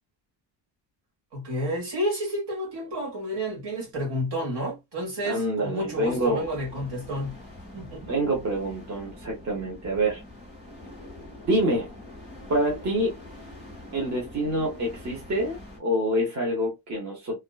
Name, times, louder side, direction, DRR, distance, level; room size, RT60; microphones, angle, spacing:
voice 1, 1.3-7.3 7.7-8.0, equal, 65° right, 1.8 m, -30 dB
voice 2, 5.2-6.5 8.1-10.2 11.5-11.9 12.5-13.2 13.9-17.4, right 1 dB, 40° right, 0.9 m, -26 dB
sound 1, 5.6-15.8, left 1 dB, 15° right, 1.3 m, -45 dB
2.8 x 2.3 x 2.3 m
cardioid pair, 150°, 44 cm